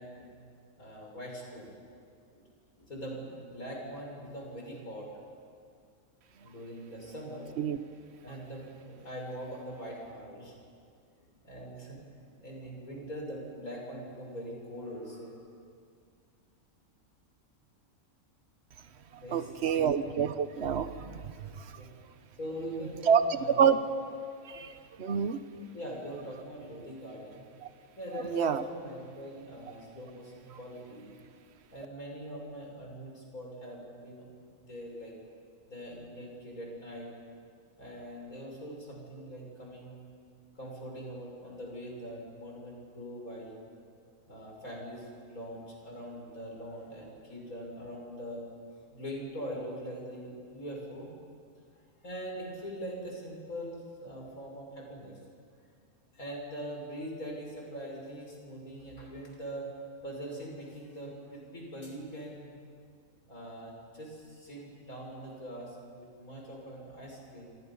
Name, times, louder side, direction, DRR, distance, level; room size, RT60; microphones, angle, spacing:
voice 1, 0.0-1.7 2.3-2.4 2.8-5.1 6.4-7.5 8.2-10.5 11.2-12.0 12.3-15.4 19.2-20.0 21.7-21.9 22.4-23.7 25.7-27.5 28.0-31.1 31.7-34.2 34.5-35.1 35.7-37.1 37.8-40.0 40.6-43.6 44.3-48.4 48.7-51.1 52.0-55.2 56.1-59.7 60.0-62.5 63.3-67.5, equal, 75° left, -1 dB, 6.3 m, -42 dB
voice 2, 19.3-21.6 23.1-23.2 23.6-23.8 24.5-25.4 28.3-28.6, right 7 dB, 50° right, 11 dB, 1.2 m, -27 dB
28.0 x 25.5 x 5.5 m, 2.3 s
omnidirectional pair, 1.5 m